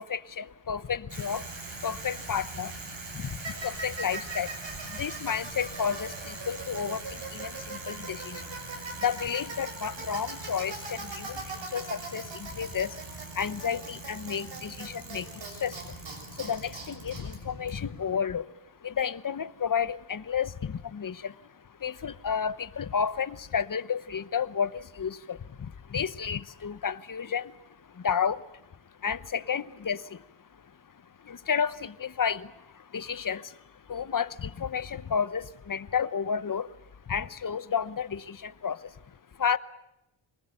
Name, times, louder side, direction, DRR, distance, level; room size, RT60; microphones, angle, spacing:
voice 1, 0.0-39.6, left 7 dB, 40° left, 0.9 m, -32 dB
Bicycle, 1.1-18.2, right 3 dB, 65° right, 6.2 m, -40 dB
25.5 x 19.5 x 9.2 m
wide cardioid pair, 90°, 47 cm